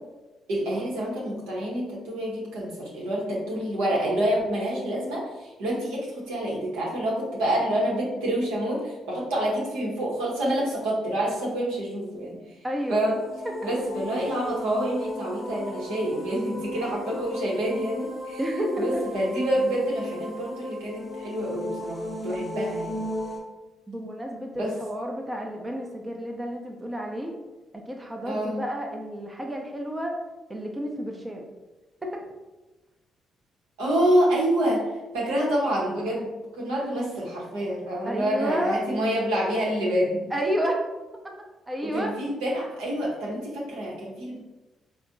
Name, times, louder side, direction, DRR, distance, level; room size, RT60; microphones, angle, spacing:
voice 1, 0.5-12.4 12.9-13.2 13.6-23.0 24.5-24.7 28.3-28.5 33.8-34.8 35.1-40.2 41.8-44.4, right 1 dB, 80° right, -5 dB, 0.8 m, -27 dB
voice 2, 12.6-13.0 13.4-13.7 18.4-19.0 23.9-27.3 27.7-30.1 30.5-31.5 32.0-32.2 38.0-38.8 40.3-40.8 41.7-42.1, equal, 20° right, 1 dB, 0.5 m, -30 dB
sound 1, 12.8-23.4, left 1 dB, 15° left, 0.8 m, -35 dB
4.2 x 2.0 x 2.5 m, 1.1 s
hypercardioid pair, 45°, 0 cm